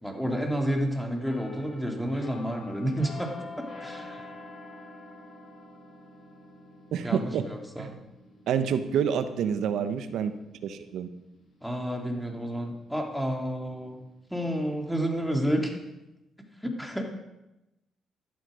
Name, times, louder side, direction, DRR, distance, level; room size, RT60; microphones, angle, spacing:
voice 1, 0.0-4.2 7.0-7.9 11.6-14.0 14.3-15.8 16.6-17.0, equal, ahead, 2 dB, 2.7 m, -30 dB
sound 1, 1.2-12.8 13.2-13.5, left 2 dB, 55° left, 6.1 m, -47 dB
voice 2, 6.9-7.5 7.8-8.0 8.5-10.3 10.6-11.1, right 8 dB, 80° right, 10 dB, 1.1 m, -28 dB
13.0 x 12.0 x 5.1 m, 0.94 s
cardioid pair, 90°, 0 cm